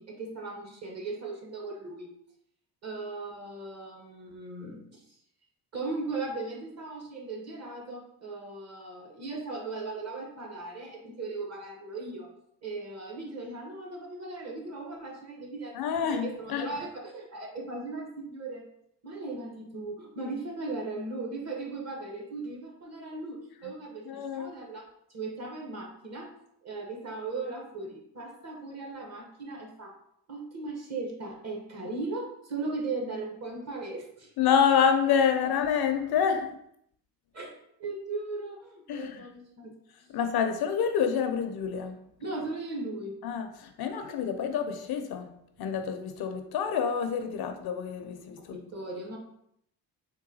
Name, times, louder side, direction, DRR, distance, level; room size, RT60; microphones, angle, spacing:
voice 1, 0.0-2.1 2.8-5.0 5.7-12.3 12.6-18.6 19.0-24.8 25.1-26.3 26.6-29.9 30.3-34.3 37.3-37.5 37.8-39.7 42.2-43.1 48.5-49.2, right 3 dB, 40° right, 0 dB, 0.9 m, -38 dB
voice 2, 15.7-16.7 24.0-24.5 34.4-36.5 38.9-39.3 40.1-42.0 43.2-45.3 45.6-48.6, left 7 dB, 60° left, 7 dB, 0.5 m, -27 dB
3.8 x 2.2 x 2.7 m, 0.73 s
cardioid pair, 80°, 42 cm